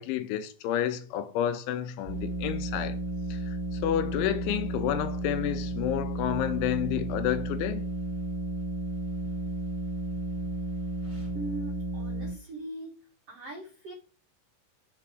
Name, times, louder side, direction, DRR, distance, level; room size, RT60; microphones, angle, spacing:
voice 1, 0.0-3.0 3.3-3.6 3.8-7.8, left 11 dB, 85° left, 3.2 m, -30 dB
sound 1, 2.0-12.3, right 1 dB, 10° left, 2.5 m, -33 dB
voice 2, 11.3-12.9 13.3-13.9, right 2 dB, 75° right, 1.4 m, -40 dB
6.9 x 4.8 x 6.1 m
omnidirectional pair, 5.3 m